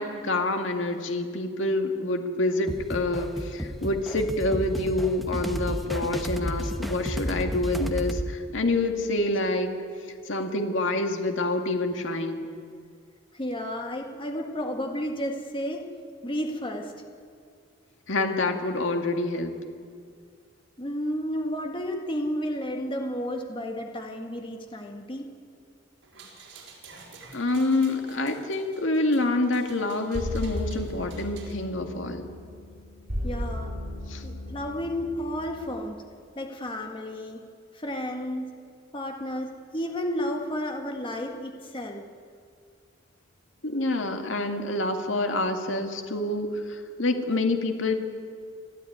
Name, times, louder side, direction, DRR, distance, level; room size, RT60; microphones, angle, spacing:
voice 1, 0.0-9.7 10.3-12.5 18.1-19.5 27.3-32.2 34.1-34.2 43.6-48.0, left 2 dB, 75° left, 4 dB, 2.1 m, -27 dB
sound 1, 2.7-8.3, equal, ahead, 1.2 m, -32 dB
voice 2, 13.3-15.9 16.2-16.9 20.8-25.3 33.2-33.7 34.2-36.0 36.4-37.4 37.7-38.5 38.9-42.0 47.3-47.4, equal, 25° left, 3 dB, 1.7 m, -32 dB
sound 2, 26.0-31.6, right 4 dB, 80° right, 5.2 m, -50 dB
sound 3, 30.1-35.8, left 1 dB, 50° right, 5.3 m, -35 dB
29.5 x 13.0 x 9.5 m, 2.1 s
head